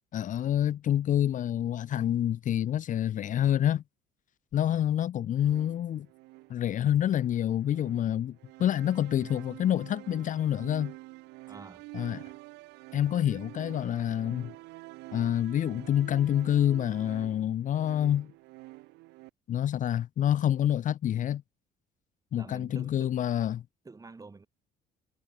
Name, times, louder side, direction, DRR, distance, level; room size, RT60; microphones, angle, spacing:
voice 1, 0.1-3.8 4.5-6.1 6.5-10.9 11.9-12.2 12.9-14.5 15.1-18.3 19.5-21.4 22.3-23.6, left 11 dB, 50° left, 0.7 m, -27 dB
voice 2, 4.6-4.9 11.5-11.9 22.3-23.2 23.8-24.5, right 3 dB, 20° right, 5.9 m, -48 dB
sound 1, 5.4-19.3, right 22 dB, 90° right, 0.7 m, -48 dB
cardioid pair, 110°, 17 cm